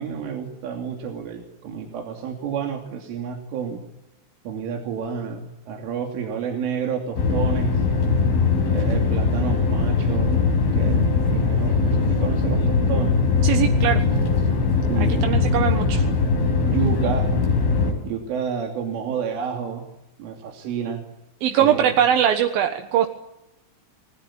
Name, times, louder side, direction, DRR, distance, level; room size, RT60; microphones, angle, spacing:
voice 1, 0.0-3.8 4.5-7.8 8.7-10.3 10.7-13.2 14.9-15.3 16.6-17.3 18.0-19.8 20.2-21.0 21.6-21.9, right 7 dB, 90° right, 2 dB, 5.5 m, -30 dB
sound 1, 7.2-17.9, left 4 dB, 85° left, 7.8 m, -20 dB
voice 2, 13.4-14.0 15.0-16.0 21.4-23.1, right 10 dB, 65° right, 5 dB, 2.6 m, -21 dB
30.0 x 20.5 x 8.7 m, 0.90 s
omnidirectional pair, 5.5 m